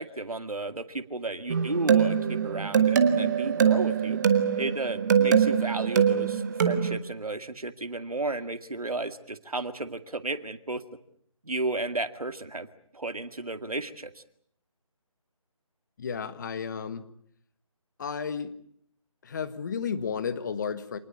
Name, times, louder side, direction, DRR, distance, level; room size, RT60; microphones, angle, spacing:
voice 1, 0.0-4.2 4.6-10.8 11.4-12.7 12.9-14.2, right 2 dB, 85° right, 10 dB, 2.2 m, -33 dB
sound 1, 1.5-7.0, right 7 dB, 30° right, 1.7 m, -23 dB
voice 2, 16.0-17.0 18.0-18.5 19.2-21.0, left 6 dB, 30° left, 12 dB, 1.5 m, -32 dB
26.5 x 20.0 x 8.6 m, 0.67 s
figure-of-eight pair, 160°, 18 cm